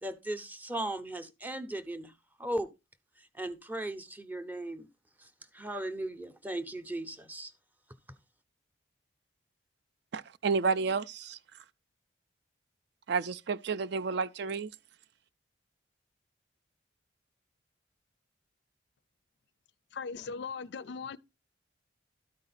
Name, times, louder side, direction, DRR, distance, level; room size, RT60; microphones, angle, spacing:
voice 1, 0.0-2.1 2.4-2.7 3.2-4.9 5.2-7.5, right 1 dB, 10° right, 0.6 m, -37 dB
voice 2, 10.1-11.4 13.1-14.7, right 5 dB, 55° right, 0.4 m, -31 dB
voice 3, 19.9-21.2, left 5 dB, 55° left, 0.4 m, -39 dB
12.5 x 4.8 x 4.1 m
head